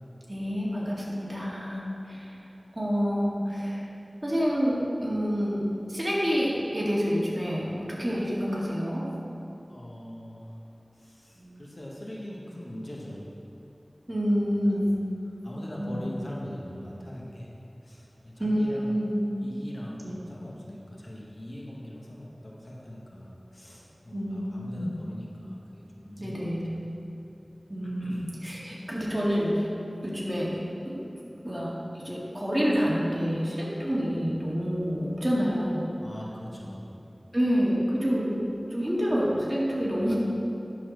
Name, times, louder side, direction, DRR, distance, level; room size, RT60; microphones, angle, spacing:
voice 1, 0.3-2.4 2.7-3.9 4.2-9.1 11.4-11.6 14.1-14.9 15.8-16.0 18.4-19.2 20.0-20.1 24.1-24.9 26.2-26.7 27.7-29.7 30.0-30.5 30.8-31.0 31.4-35.9 37.3-38.4 38.7-40.2, equal, 25° right, -6 dB, 2.0 m, -28 dB
voice 2, 9.7-10.6 11.0-13.3 14.1-14.3 14.6-14.9 15.4-17.5 17.8-19.0 19.4-26.5 27.8-28.2 34.1-34.3 36.0-36.9 40.0-40.1, left 1 dB, 55° left, -4 dB, 1.4 m, -42 dB
10.5 x 4.2 x 6.3 m, 2.9 s
wide cardioid pair, 55°, 0 cm